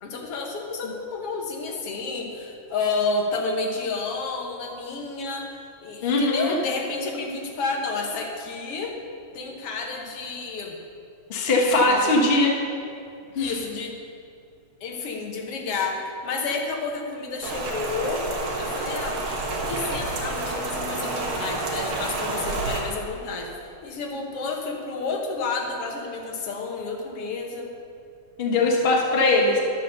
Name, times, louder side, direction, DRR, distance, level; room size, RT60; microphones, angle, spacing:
voice 1, 0.0-5.5 5.8-9.0 9.3-10.8 11.8-12.2 13.4-14.0 14.8-18.3 18.6-19.2 19.6-27.7, left 4 dB, 60° left, 1 dB, 1.9 m, -30 dB
voice 2, 6.0-6.5 11.3-12.5 13.3-13.5 28.4-29.6, left 2 dB, 85° left, -1 dB, 0.5 m, -20 dB
Rain, 17.4-22.8, right 2 dB, 50° right, 1.9 m, -29 dB
11.5 x 6.8 x 6.8 m, 2.5 s
omnidirectional pair, 3.4 m